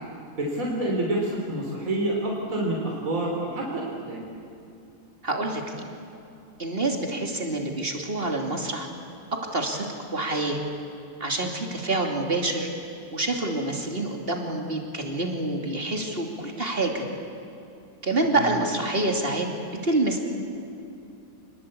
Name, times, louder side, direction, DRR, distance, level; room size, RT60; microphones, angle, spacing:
voice 1, 0.4-4.2 18.2-18.5, right 1 dB, 55° right, -2 dB, 3.8 m, -28 dB
voice 2, 5.2-5.6 6.6-8.9 9.5-9.9 10.1-10.6 11.2-12.7 13.1-17.0 18.0-19.5 19.8-20.2, right 2 dB, 35° right, 2 dB, 2.9 m, -27 dB
27.5 x 20.5 x 8.6 m, 2.7 s
omnidirectional pair, 1.7 m